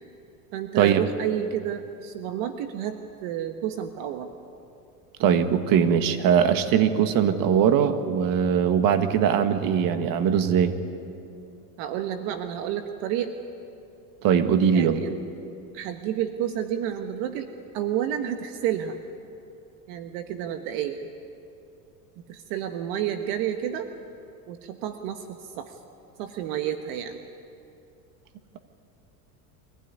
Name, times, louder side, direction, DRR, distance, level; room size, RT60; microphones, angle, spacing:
voice 1, 0.5-4.3 11.8-13.3 14.6-15.2 15.7-17.5 17.7-19.0 19.9-21.0 22.3-23.9 24.5-25.7 26.2-27.2, right 10 dB, 65° right, 7 dB, 1.4 m, -30 dB
voice 2, 5.2-10.7 14.2-15.0, right 8 dB, 50° right, 9 dB, 1.7 m, -21 dB
24.5 x 16.0 x 9.7 m, 2.7 s
supercardioid pair, 120°, 44 cm